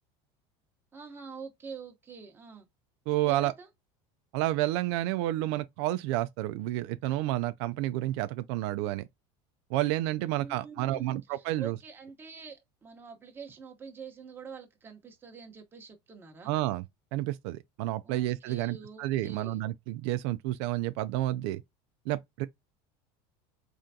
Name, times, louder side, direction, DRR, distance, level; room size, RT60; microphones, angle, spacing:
voice 1, 0.9-2.7 3.3-3.7 10.1-16.6 18.0-19.6, right 5 dB, 15° right, 0.9 m, -46 dB
voice 2, 3.1-3.5 4.3-9.1 9.7-11.8 16.5-16.8 17.1-21.6 22.1-22.5, right 15 dB, 70° right, 0.4 m, -30 dB
3.8 x 3.3 x 2.7 m
cardioid pair, 150°, 14 cm